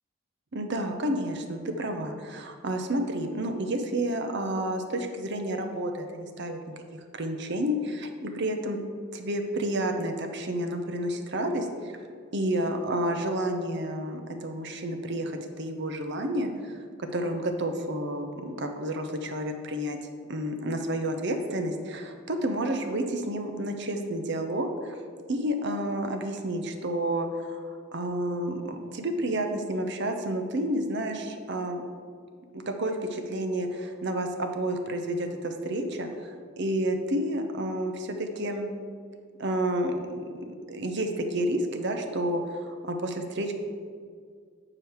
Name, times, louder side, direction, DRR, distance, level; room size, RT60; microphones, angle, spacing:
voice 1, 0.5-8.8 9.1-12.0 12.3-20.0 20.3-25.0 25.3-31.8 32.5-38.7 39.4-43.5, right 1 dB, 55° right, 5 dB, 0.7 m, -30 dB
8.6 x 4.9 x 4.7 m, 2.1 s
head